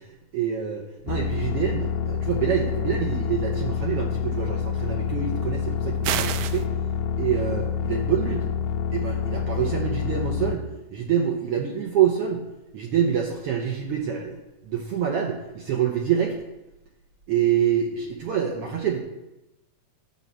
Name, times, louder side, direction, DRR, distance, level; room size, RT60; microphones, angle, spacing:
voice 1, 0.3-6.7 7.2-8.5 8.9-12.4 12.7-16.3 17.3-19.0, right 8 dB, 65° right, 2 dB, 1.5 m, -26 dB
sound 1, 1.1-10.6, left 7 dB, 85° left, 2.1 m, -27 dB
sound 2, 6.0-6.6, right 11 dB, 85° right, 2.1 m, -27 dB
9.6 x 5.5 x 7.4 m, 0.94 s
omnidirectional pair, 3.5 m